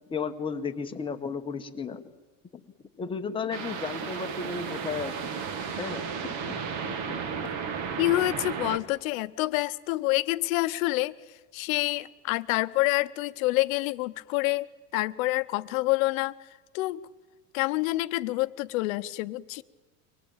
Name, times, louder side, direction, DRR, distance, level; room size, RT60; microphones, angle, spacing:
voice 1, 0.1-2.0 2.5-2.6 3.0-5.3 5.7-7.5, left 5 dB, 15° left, 5 dB, 1.0 m, -34 dB
sound 1, 3.5-8.8, right 6 dB, 45° right, 1.7 m, -34 dB
voice 2, 8.0-11.2 11.5-14.7 14.9-16.3 16.7-17.1 17.5-19.6, left 19 dB, 80° left, 14 dB, 0.9 m, -27 dB
24.0 x 19.0 x 8.9 m, 1.2 s
cardioid pair, 165°, 40 cm